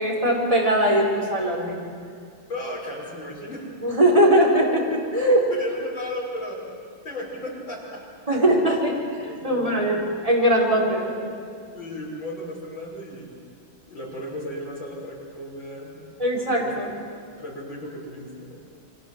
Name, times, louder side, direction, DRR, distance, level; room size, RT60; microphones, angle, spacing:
voice 1, 0.0-1.8 3.8-5.5 8.3-10.0 10.2-11.3 16.2-16.9, right 1 dB, 15° right, -3 dB, 4.8 m, -21 dB
voice 2, 2.5-3.7 5.5-6.6 7.0-8.0 8.3-8.4 8.7-8.8 9.2-10.1 11.7-13.4 13.9-16.1 16.6-17.0 17.4-18.6, left 1 dB, 65° left, -2 dB, 6.5 m, -35 dB
28.0 x 24.5 x 7.5 m, 2.3 s
omnidirectional pair, 2.3 m